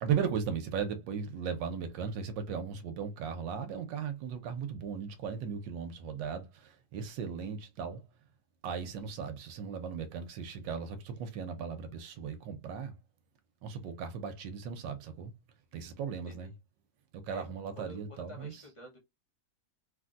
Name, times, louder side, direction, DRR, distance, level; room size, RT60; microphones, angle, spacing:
voice 1, 0.0-8.0 8.6-12.9 13.6-15.3 15.7-16.5 17.1-18.6, right 7 dB, 90° right, 1.3 m, -37 dB
voice 2, 17.8-19.0, left 2 dB, 45° left, 0.4 m, -50 dB
3.2 x 2.5 x 2.4 m
omnidirectional pair, 1.9 m